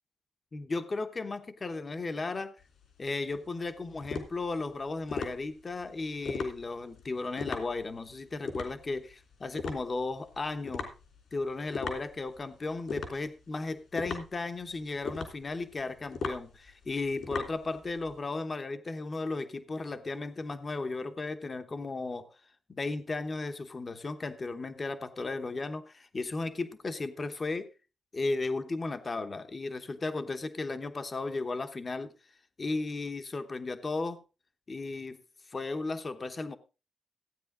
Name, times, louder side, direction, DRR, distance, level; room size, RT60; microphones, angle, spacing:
voice 1, 0.5-2.6 3.0-10.9 11.3-22.3 22.7-27.7 28.1-32.1 32.6-34.2 34.7-35.2 35.5-36.6, left 3 dB, 30° left, 9 dB, 1.0 m, -35 dB
sound 1, 2.6-18.2, left 5 dB, 70° left, 3.2 m, -40 dB
15.5 x 9.3 x 3.7 m, 0.31 s
wide cardioid pair, 155°, 0 cm